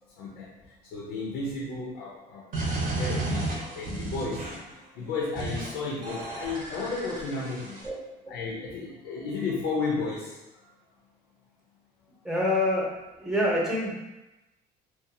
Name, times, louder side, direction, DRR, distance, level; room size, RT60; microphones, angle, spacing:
voice 1, 0.2-4.5 4.9-7.8 8.3-10.7, left 3 dB, 85° left, -3 dB, 0.5 m, -33 dB
sound 1, 2.5-4.7 5.4-5.7 6.0-7.9, right 2 dB, 55° right, 0.8 m, -32 dB
voice 2, 12.2-12.9 13.2-13.9, left 1 dB, 5° right, -5 dB, 0.8 m, -26 dB
2.6 x 2.3 x 2.6 m, 1.0 s
cardioid pair, 110°, 17 cm